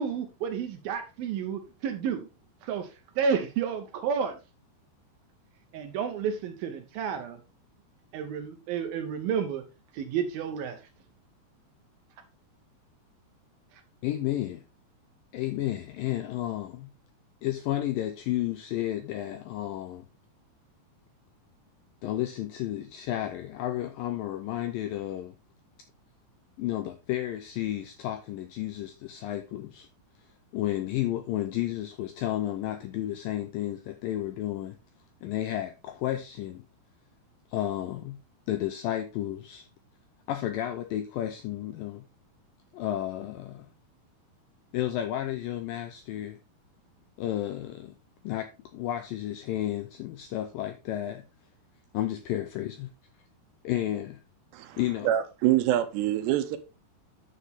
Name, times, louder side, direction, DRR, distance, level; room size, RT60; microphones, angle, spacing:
voice 1, 0.0-2.3 2.6-2.9 3.2-4.4 5.7-7.4 8.1-9.6 9.9-10.8, right 7 dB, 75° right, 2.4 m, -31 dB
voice 2, 14.0-14.6 15.3-16.9 17.4-20.1 22.0-25.3 26.6-29.9 30.5-34.8 35.2-36.6 37.5-38.2 38.5-39.7 40.3-42.0 42.7-43.7 44.7-46.4 47.2-47.9 48.2-51.2 51.9-52.9 53.6-54.2 54.8-55.1, left 13 dB, 85° left, 2.0 m, -32 dB
voice 3, 55.0-56.6, right 13 dB, 90° right, 2.9 m, -25 dB
9.6 x 6.5 x 3.5 m
omnidirectional pair, 4.8 m